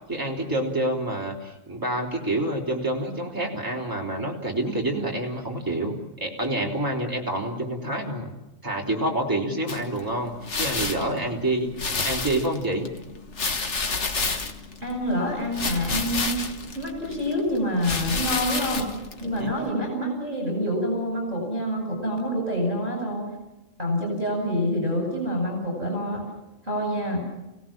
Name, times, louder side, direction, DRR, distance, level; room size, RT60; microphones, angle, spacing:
voice 1, 0.1-8.3 8.6-10.3 10.6-11.7 12.0-12.9 19.4-19.5, right 1 dB, 15° right, -2 dB, 3.8 m, -27 dB
sound 1, 9.7-19.7, left 3 dB, 65° left, 1.9 m, -31 dB
voice 2, 14.8-16.4 16.7-18.9 19.2-23.3 23.8-26.2 26.6-27.3, equal, 40° right, 1 dB, 8.4 m, -27 dB
29.5 x 17.5 x 7.4 m, 0.97 s
omnidirectional pair, 1.3 m